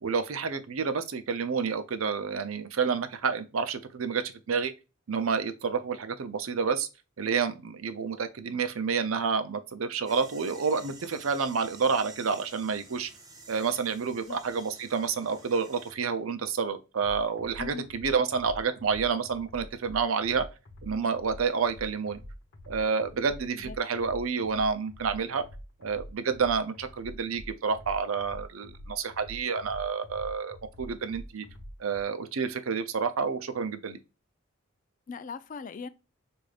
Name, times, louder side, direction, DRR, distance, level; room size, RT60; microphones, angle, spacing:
voice 1, 0.0-4.7 5.1-6.9 7.2-13.1 13.5-20.5 20.8-22.2 22.7-25.4 25.8-31.4 31.8-34.0, right 5 dB, 85° right, 0.6 m, -29 dB
sound 1, 10.1-15.9, right 3 dB, 20° right, 0.7 m, -51 dB
sound 2, 17.0-32.0, equal, 55° left, 1.0 m, -46 dB
voice 2, 35.1-35.9, left 5 dB, 40° left, 0.3 m, -39 dB
4.9 x 2.6 x 2.4 m
head